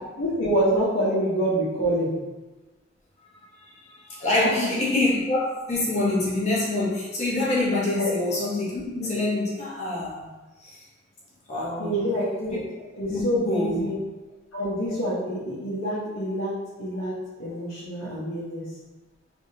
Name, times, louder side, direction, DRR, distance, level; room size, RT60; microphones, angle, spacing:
voice 1, 0.2-2.1 4.4-4.7 7.9-8.1 11.8-12.6 13.0-14.0 14.5-16.5 16.8-17.1 17.4-18.6, right 1 dB, 70° left, -11 dB, 1.0 m, -26 dB
voice 2, 3.8-10.3 10.6-10.8 11.5-12.0 13.1-13.8, left 2 dB, 35° left, -6 dB, 1.0 m, -26 dB
3.4 x 3.4 x 2.7 m, 1.2 s
head